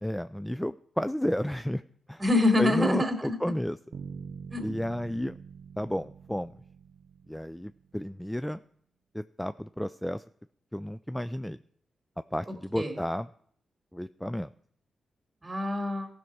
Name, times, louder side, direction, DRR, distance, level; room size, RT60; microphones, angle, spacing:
voice 1, 0.0-1.8 2.1-2.2 2.6-3.8 4.6-5.4 5.8-6.5 7.3-8.6 9.1-10.2 10.7-11.6 12.3-13.3 13.9-14.5, equal, 5° left, 13 dB, 0.3 m, -32 dB
voice 2, 2.2-3.4 4.5-4.6 12.7-12.9 15.4-16.1, left 2 dB, 20° right, 4 dB, 2.6 m, -25 dB
Bass guitar, 3.9-7.9, right 6 dB, 80° right, 0.8 m, -45 dB
15.5 x 6.4 x 4.6 m, 0.63 s
cardioid pair, 75°, 0 cm